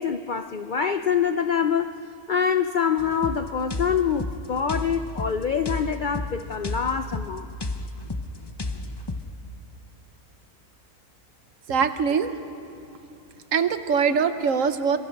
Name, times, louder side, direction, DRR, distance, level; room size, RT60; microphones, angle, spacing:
voice 1, 0.0-1.9 2.3-7.5, left 7 dB, 65° left, 10 dB, 0.5 m, -25 dB
sound 1, 3.0-9.3, left 2 dB, 25° left, 0.7 m, -32 dB
voice 2, 11.7-12.4 13.5-15.0, right 6 dB, 65° right, 10 dB, 1.2 m, -22 dB
27.0 x 23.0 x 5.3 m, 2.6 s
omnidirectional pair, 1.5 m